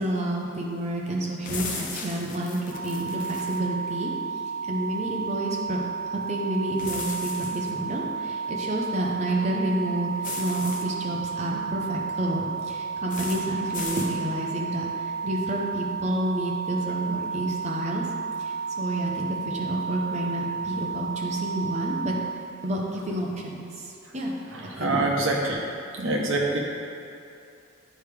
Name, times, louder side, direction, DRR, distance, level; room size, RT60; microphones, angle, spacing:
voice 1, 0.0-4.1 4.6-5.8 6.1-18.0 18.4-22.2 22.6-24.3 24.8-25.2, right 1 dB, 30° right, -2 dB, 0.8 m, -29 dB
sound 1, 1.4-3.6 6.8-7.7 10.2-10.8 13.1-13.4 13.7-14.1, left 4 dB, 40° left, 0.6 m, -36 dB
sound 2, 2.7-22.3, right 5 dB, 85° right, 0.6 m, -32 dB
voice 2, 24.5-25.6 26.0-26.6, right 2 dB, 65° right, -1 dB, 1.0 m, -25 dB
8.8 x 4.7 x 3.4 m, 2.6 s
head